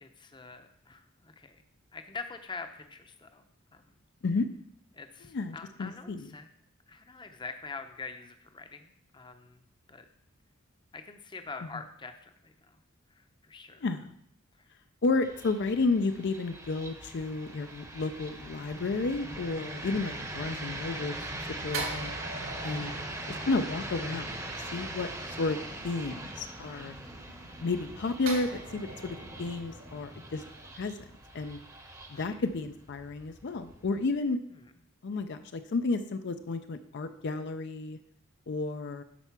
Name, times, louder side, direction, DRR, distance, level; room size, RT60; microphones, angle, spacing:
voice 1, 0.0-1.6 1.9-3.4 3.7-3.9 4.9-6.5 6.9-9.6 9.9-10.1 10.9-12.8 13.1-13.8 14.6-14.7 22.8-23.0 27.1-27.5 32.1-32.4 34.5-34.6, left 4 dB, 20° left, 7 dB, 0.7 m, -45 dB
voice 2, 5.3-6.3 13.8-14.1 15.0-21.2 21.6-22.1 22.6-22.9 23.3-25.1 25.4-25.6 25.8-26.9 27.6-30.4 30.7-30.9 31.3-31.6 32.1-34.4 35.0-38.0 38.5-39.0, left 3 dB, 55° left, 9 dB, 0.4 m, -32 dB
sound 1, 15.2-34.2, right 1 dB, 15° right, 0.9 m, -41 dB
sound 2, 21.7-24.4 28.3-31.5 31.8-32.0, right 3 dB, 75° right, 2.0 m, -42 dB
10.0 x 4.4 x 5.9 m, 0.73 s
head